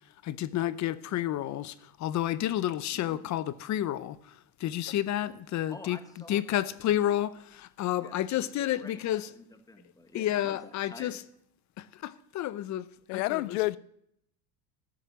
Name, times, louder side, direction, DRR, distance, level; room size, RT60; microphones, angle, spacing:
voice 1, 0.2-6.0 6.3-9.3 10.1-11.2 11.8-13.4, left 12 dB, 40° left, 0.8 m, -31 dB
voice 2, 2.9-3.3 5.7-6.7 8.0-11.2, left 2 dB, 10° left, 1.4 m, -50 dB
voice 3, 13.1-13.8, left 20 dB, 80° left, 0.6 m, -28 dB
13.5 x 6.5 x 9.7 m
supercardioid pair, 110°, 45 cm